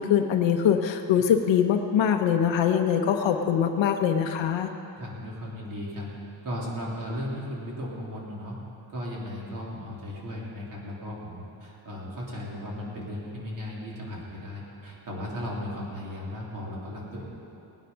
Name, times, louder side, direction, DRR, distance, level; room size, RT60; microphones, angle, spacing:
voice 1, 0.0-4.7, left 8 dB, 70° left, 4 dB, 0.9 m, -23 dB
voice 2, 5.0-6.1 6.4-8.6 8.9-17.2, left 1 dB, 45° right, -4 dB, 3.2 m, -36 dB
19.0 x 9.4 x 5.6 m, 2.8 s
cardioid pair, 160°, 46 cm